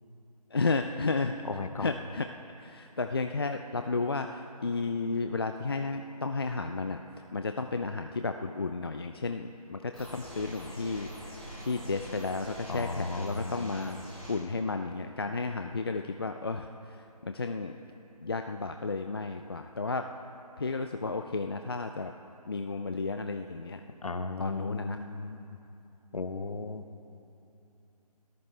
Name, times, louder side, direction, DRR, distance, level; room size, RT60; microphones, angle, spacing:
voice 1, 0.5-1.3 1.8-2.3 2.6-7.0 7.3-14.0 14.3-17.7 18.2-20.1 20.6-22.1 22.5-23.8 24.4-25.0, left 3 dB, 35° left, 6 dB, 0.5 m, -33 dB
voice 2, 1.5-1.9 12.7-13.7 24.0-25.4 26.1-26.8, left 3 dB, 60° left, 8 dB, 1.2 m, -35 dB
sound 1, 9.9-14.3, equal, 5° left, 3.5 m, -44 dB
29.0 x 13.5 x 3.3 m, 2.8 s
figure-of-eight pair, 165°, 21 cm